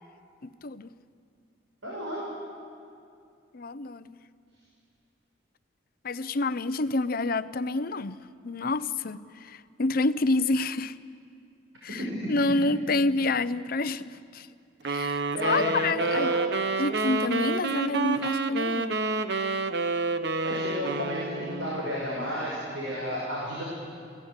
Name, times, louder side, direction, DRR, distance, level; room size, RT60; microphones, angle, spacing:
voice 1, 0.4-0.9 3.5-4.2 6.0-8.2 8.4-11.0 11.8-14.5 14.9-16.3 16.8-19.0, left 2 dB, 50° left, 14 dB, 0.6 m, -28 dB
voice 2, 1.8-2.2 12.0-12.1 15.3-15.8 16.1-16.3 20.4-23.6, equal, 90° right, -4 dB, 5.8 m, -32 dB
sound 1, 14.9-21.8, right 3 dB, 60° right, 0.9 m, -28 dB
28.5 x 17.0 x 8.2 m, 2.4 s
head